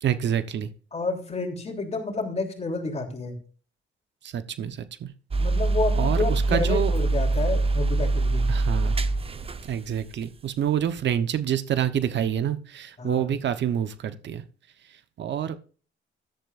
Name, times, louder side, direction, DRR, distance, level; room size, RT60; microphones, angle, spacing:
voice 1, 0.0-0.7 4.2-5.1 5.9-6.9 8.5-9.0 9.6-14.4 15.2-15.6, right 9 dB, 65° right, 11 dB, 1.0 m, -27 dB
voice 2, 0.9-3.3 5.4-8.5 13.0-13.3, left 3 dB, 35° left, 3 dB, 3.3 m, -30 dB
sound 1, 5.3-10.2, right 3 dB, 30° right, 0.9 m, -24 dB
14.0 x 11.5 x 2.6 m, 0.40 s
cardioid pair, 90°, 20 cm